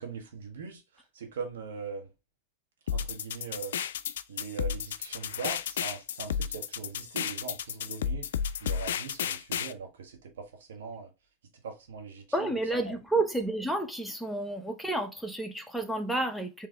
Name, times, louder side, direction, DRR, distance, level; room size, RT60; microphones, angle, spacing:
voice 1, 0.0-2.1 2.9-3.8 4.3-11.1 11.6-12.5 12.8-13.0, right 5 dB, 80° right, 1.5 m, -41 dB
sound 1, 2.9-9.7, left 8 dB, 80° left, 0.4 m, -32 dB
voice 2, 12.3-16.7, right 2 dB, ahead, 0.9 m, -30 dB
3.9 x 3.3 x 3.3 m
hypercardioid pair, 100°, 0 cm